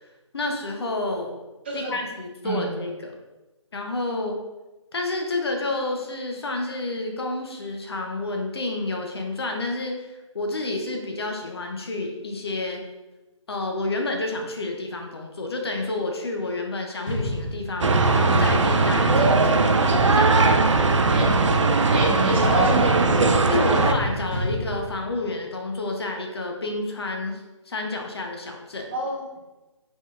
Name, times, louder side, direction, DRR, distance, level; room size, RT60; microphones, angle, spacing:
voice 1, 0.3-1.3 1.7-3.2 3.7-4.4 4.9-12.8 13.5-19.4 20.1-20.4 23.5-27.4 27.7-28.9, left 2 dB, 50° left, 2 dB, 0.7 m, -29 dB
sound 1, 17.1-25.1, left 1 dB, 85° left, 1.1 m, -28 dB
sound 2, 17.8-23.9, right 3 dB, 70° right, 0.4 m, -19 dB
voice 2, 21.1-23.1 28.9-29.2, right 1 dB, 20° right, -3 dB, 0.6 m, -27 dB
3.9 x 3.8 x 2.5 m, 1.1 s
figure-of-eight pair, 155°, 16 cm